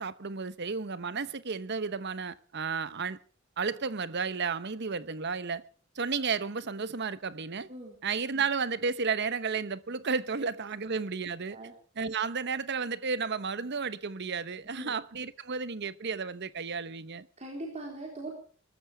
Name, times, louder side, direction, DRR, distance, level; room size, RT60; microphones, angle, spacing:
voice 1, 0.0-3.2 3.6-5.6 5.9-7.7 8.0-11.6 12.0-17.3, right 5 dB, 55° right, 0.9 m, -32 dB
voice 2, 17.4-18.3, right 1 dB, 35° right, 4.0 m, -40 dB
23.0 x 13.5 x 3.4 m
head